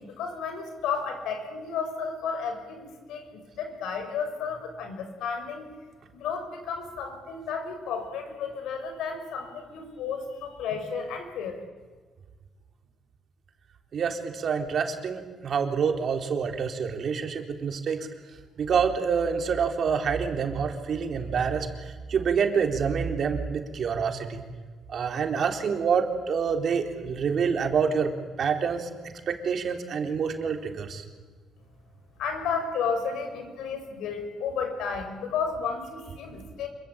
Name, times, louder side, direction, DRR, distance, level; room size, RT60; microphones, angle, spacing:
voice 1, 0.0-5.6 6.1-11.6 32.2-36.7, left 6 dB, 85° left, 6 dB, 6.3 m, -32 dB
voice 2, 13.9-18.1 18.6-24.4 24.9-28.1 28.4-28.9 29.3-31.0, right 6 dB, 55° right, 5 dB, 3.8 m, -27 dB
27.0 x 23.0 x 8.8 m, 1.4 s
cardioid pair, 90°, 0 cm